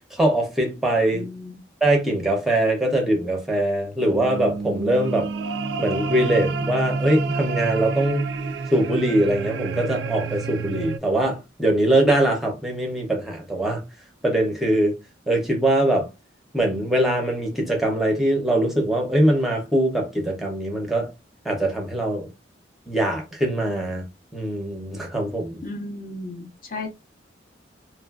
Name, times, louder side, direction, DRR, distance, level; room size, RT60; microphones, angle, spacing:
voice 1, 0.1-1.3 1.8-5.3 5.8-8.3 8.7-13.8 14.2-15.0 15.3-16.1 16.5-21.1 21.4-22.3 22.9-24.0 24.3-25.6, right 1 dB, ahead, 0.6 m, -22 dB
voice 2, 1.1-1.5 25.6-26.9, left 2 dB, 45° left, 0.6 m, -34 dB
sound 1, 4.0-11.0, right 4 dB, 70° right, 0.3 m, -28 dB
3.0 x 2.4 x 2.3 m
head